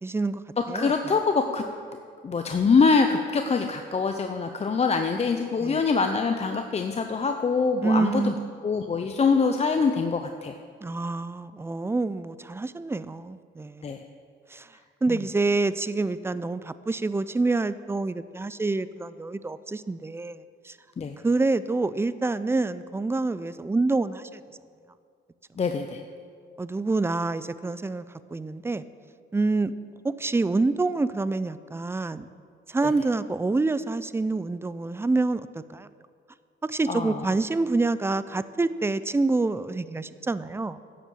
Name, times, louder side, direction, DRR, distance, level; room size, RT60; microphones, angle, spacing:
voice 1, 0.0-0.4 0.7-0.9 5.6-5.8 7.8-8.5 10.8-13.9 14.5-14.7 15.0-20.8 21.2-24.4 26.6-28.0 28.3-28.8 29.3-29.7 30.0-32.3 32.7-35.9 36.6-40.8, right 3 dB, 10° right, 15 dB, 0.4 m, -27 dB
voice 2, 0.7-1.6 2.2-8.3 8.6-10.5 13.8-14.0 21.0-21.1 25.6-26.0 36.9-37.2, left 4 dB, 30° left, 5 dB, 0.6 m, -24 dB
11.0 x 7.5 x 7.0 m, 2.2 s
cardioid pair, 90°, 20 cm